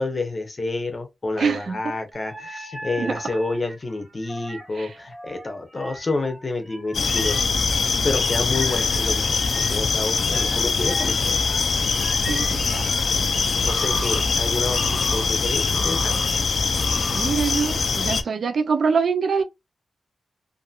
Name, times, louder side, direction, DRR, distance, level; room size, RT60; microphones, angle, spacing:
voice 1, 0.0-11.5 13.1-13.2 13.5-16.2, left 2 dB, 35° left, 0.7 m, -29 dB
voice 2, 1.4-1.9 3.0-3.1 4.8-4.9 12.3-13.0 17.1-19.4, right 5 dB, 70° right, 0.3 m, -24 dB
sound 1, 2.1-7.9 8.5-13.0 13.7-14.2 14.7-15.3 15.7-16.3 16.8-17.3 17.8-17.9, right 1 dB, 20° right, 0.9 m, -38 dB
sound 2, 6.9-18.2, left 4 dB, 70° left, 0.4 m, -23 dB
2.6 x 2.6 x 2.3 m
wide cardioid pair, 145°, 0 cm